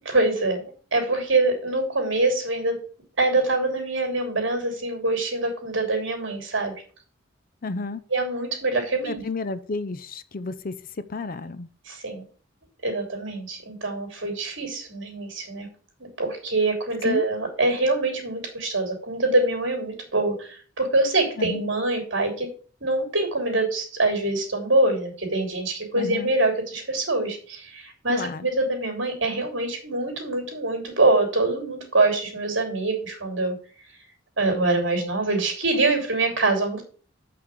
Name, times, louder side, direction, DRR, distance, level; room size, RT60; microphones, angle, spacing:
voice 1, 0.0-2.7 3.2-6.7 8.1-9.2 11.9-12.2 12.8-15.7 16.0-22.5 22.8-33.5 34.4-36.8, right 2 dB, 65° right, 3.3 m, -24 dB
voice 2, 7.6-8.0 9.0-10.8 11.1-11.7 17.0-17.3 21.4-21.7 25.9-26.3 28.1-28.5, left 3 dB, 45° left, 0.6 m, -31 dB
6.6 x 5.9 x 6.7 m
head